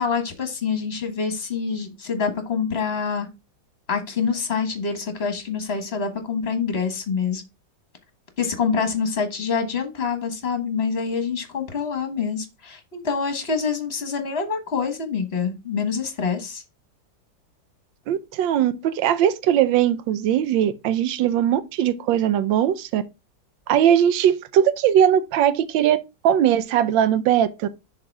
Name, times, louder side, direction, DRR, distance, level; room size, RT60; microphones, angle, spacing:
voice 1, 0.0-3.3 3.9-7.4 8.4-16.6, left 5 dB, 35° left, 1.4 m, -26 dB
voice 2, 18.1-23.0 23.7-26.0 26.2-27.7, right 10 dB, 85° right, 1.4 m, -20 dB
6.6 x 3.8 x 4.6 m
omnidirectional pair, 2.0 m